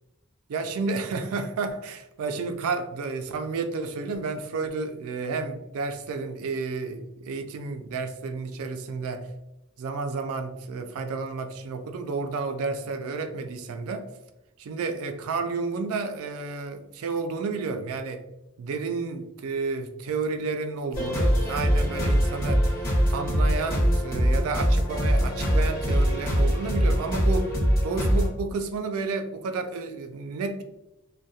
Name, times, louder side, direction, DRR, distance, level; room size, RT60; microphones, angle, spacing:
voice 1, 0.5-9.3 9.8-14.1 14.6-18.2 18.6-22.7 23.1-27.5 27.8-30.6, right 4 dB, 75° right, 7 dB, 0.3 m, -31 dB
sound 1, 20.9-28.3, equal, 45° left, 0.9 m, -23 dB
2.7 x 2.2 x 2.3 m, 0.93 s
head